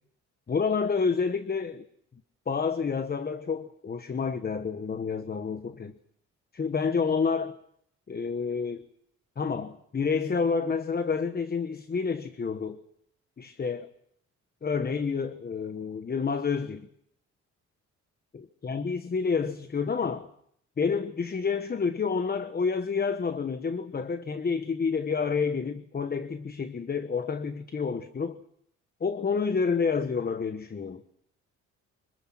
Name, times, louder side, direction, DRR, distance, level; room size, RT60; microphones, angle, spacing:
voice 1, 0.5-1.8 2.5-5.9 6.5-7.5 8.1-8.8 9.4-12.8 13.4-13.9 14.6-16.9 18.3-20.3 20.8-28.4 29.0-31.0, left 5 dB, 30° left, 10 dB, 1.2 m, -29 dB
25.5 x 24.0 x 6.0 m, 0.71 s
cardioid pair, 90°, 30 cm